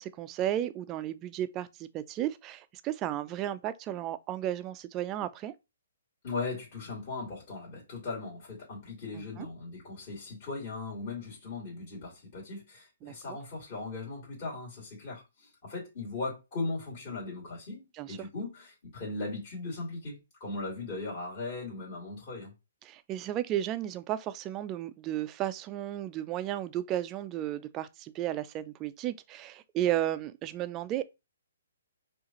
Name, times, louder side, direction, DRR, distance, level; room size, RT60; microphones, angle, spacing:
voice 1, 0.0-5.5 9.1-9.5 13.0-13.4 18.0-18.2 22.9-31.0, right 12 dB, 25° right, 0.4 m, -34 dB
voice 2, 6.2-22.5, left 3 dB, 40° left, 2.3 m, -38 dB
4.7 x 2.5 x 2.9 m
hypercardioid pair, 135°, 0 cm